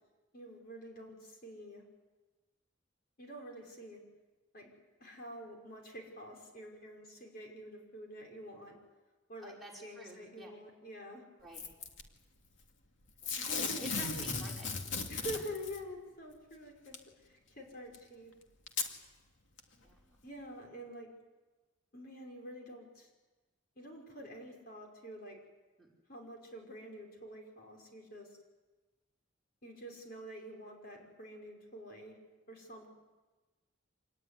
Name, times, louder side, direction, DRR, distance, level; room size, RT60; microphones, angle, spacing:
voice 1, 0.3-1.8 3.2-4.0 4.5-4.7 5.0-8.8 9.3-9.5 9.8-11.2 13.4-13.9 14.1-14.3 15.1-17.0 17.2-18.3 20.2-21.1 21.9-23.1 23.8-25.4 26.1-28.3 29.6-32.2 32.5-32.9, equal, 50° left, 0 dB, 5.4 m, -47 dB
voice 2, 9.4-10.5 11.4-11.6 13.2-14.7 19.8-20.2 25.8-25.9, equal, ahead, -3 dB, 5.4 m, -51 dB
Packing tape duct tape / Tearing, 11.5-12.0 13.2-15.8 16.9-17.0 17.9-18.0 18.7-18.9 19.6-19.7, left 4 dB, 75° left, 2.5 m, -36 dB
26.5 x 19.5 x 9.9 m, 1.2 s
head